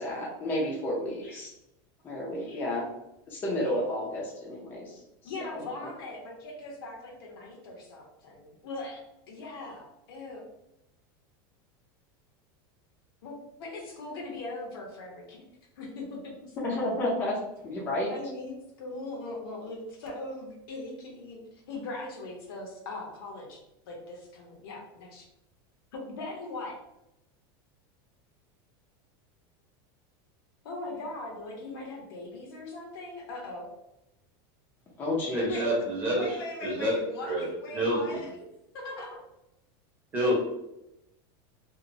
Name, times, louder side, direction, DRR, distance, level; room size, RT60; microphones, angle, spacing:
voice 1, 0.0-1.5 2.0-2.9 3.3-5.0 5.5-5.6 16.6-17.4 17.6-18.1 35.0-35.6, left 1 dB, 15° left, -5 dB, 0.4 m, -31 dB
voice 2, 5.2-10.4 13.2-15.4 15.8-16.6 18.1-25.3 26.1-26.8 30.6-33.7 35.5-35.8 36.1-38.3 38.7-39.2, left 2 dB, 80° left, 0 dB, 0.9 m, -40 dB
voice 3, 35.3-37.4 37.7-38.2 40.1-40.3, equal, 15° right, -4 dB, 0.7 m, -28 dB
2.8 x 2.0 x 2.5 m, 0.86 s
supercardioid pair, 180°, 12 cm